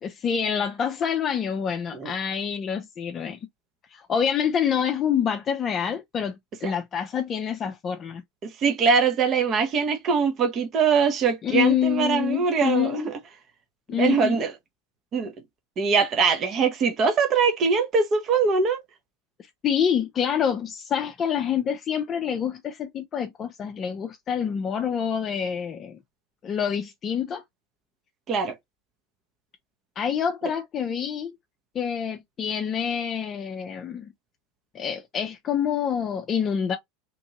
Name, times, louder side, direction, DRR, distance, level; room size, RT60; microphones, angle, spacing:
voice 1, 0.0-3.4 3.9-8.2 11.4-13.1 13.9-14.3 19.6-26.0 26.4-27.4 30.0-31.3 31.7-34.1 34.7-36.8, left 8 dB, 35° left, 0.4 m, -27 dB
voice 2, 8.6-13.1 13.9-14.5 15.1-15.3 15.8-18.8 28.3-28.6, right 5 dB, 40° right, 0.7 m, -22 dB
2.9 x 2.6 x 2.8 m
hypercardioid pair, 85°, 0 cm